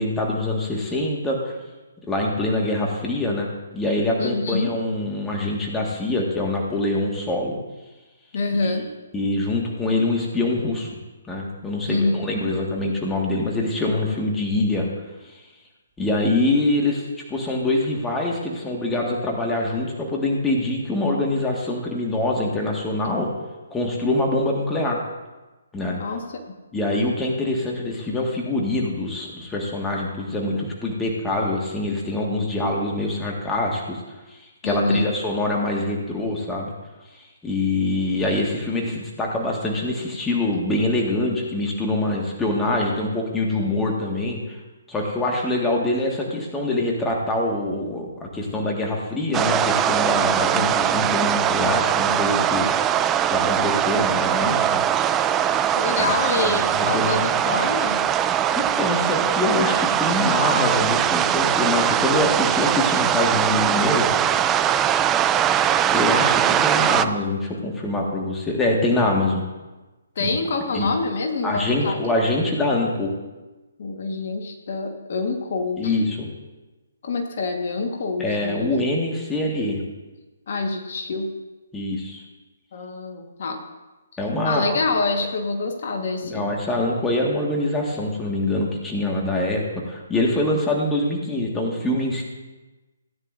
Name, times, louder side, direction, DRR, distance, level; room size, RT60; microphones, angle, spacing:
voice 1, 0.0-1.6 2.1-3.5 3.7-7.6 8.6-8.8 9.1-10.9 11.3-14.9 15.3-15.4 16.0-23.3 23.7-25.0 25.7-26.0 26.7-34.0 34.3-36.7 37.4-44.6 44.9-52.7 53.3-54.8 56.3-57.6 58.5-64.1 65.9-69.4 70.2-70.3 70.7-70.9 71.4-73.1 75.8-76.3 78.2-79.8 81.7-82.2 84.2-84.8 86.2-92.2, left 2 dB, 10° left, -2 dB, 1.7 m, -24 dB
voice 2, 4.2-4.7 8.3-8.8 11.8-12.3 25.9-26.2 34.6-35.1 50.5-50.7 55.7-58.0 70.1-72.0 73.8-76.0 77.0-78.7 80.5-81.3 82.7-83.6 84.4-86.5, left 3 dB, 55° left, 3 dB, 1.5 m, -26 dB
sound 1, 49.3-67.1, right 10 dB, 15° right, 0.4 m, -21 dB
16.5 x 9.6 x 2.6 m, 1.1 s
hypercardioid pair, 145°, 0 cm